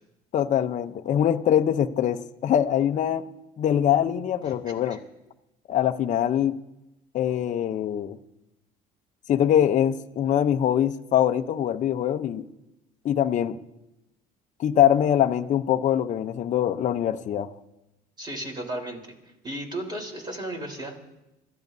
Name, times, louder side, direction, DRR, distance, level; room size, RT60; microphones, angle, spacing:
voice 1, 0.3-3.2 3.6-5.0 5.7-6.6 7.1-8.2 9.3-12.4 13.0-13.6 14.6-17.5, left 10 dB, 45° left, 8 dB, 0.8 m, -23 dB
voice 2, 18.2-19.0 19.4-20.9, right 1 dB, 25° right, 1 dB, 3.9 m, -34 dB
26.0 x 14.5 x 2.7 m, 0.93 s
supercardioid pair, 95°, 17 cm